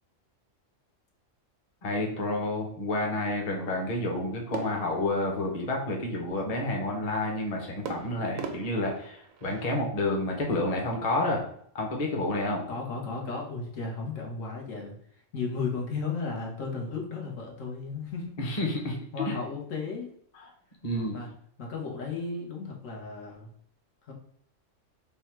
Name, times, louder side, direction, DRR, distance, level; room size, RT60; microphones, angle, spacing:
voice 1, 1.8-11.5 11.7-12.6 18.4-19.4 20.8-21.2, left 2 dB, 35° left, 0 dB, 0.8 m, -29 dB
sound 1, 4.5-6.1 7.8-9.9, right 6 dB, 90° right, 1.0 m, -41 dB
voice 2, 12.7-18.4 19.1-20.1 21.1-21.3 21.6-23.5 24.0-24.1, left 4 dB, 80° left, 0 dB, 1.3 m, -34 dB
3.5 x 2.2 x 4.3 m, 0.65 s
omnidirectional pair, 1.3 m